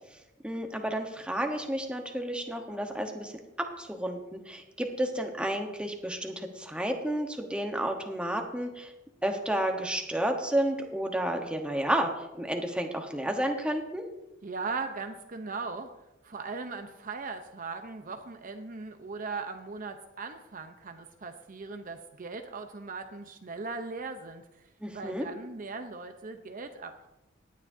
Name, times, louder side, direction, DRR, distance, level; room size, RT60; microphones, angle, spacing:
voice 1, 0.4-3.3 3.6-8.9 9.2-14.0 24.8-25.3, right 1 dB, 5° right, 3 dB, 1.1 m, -31 dB
voice 2, 14.4-15.9 16.2-24.7 24.9-27.1, right 4 dB, 45° right, 6 dB, 0.8 m, -39 dB
18.5 x 9.8 x 2.7 m, 0.93 s
head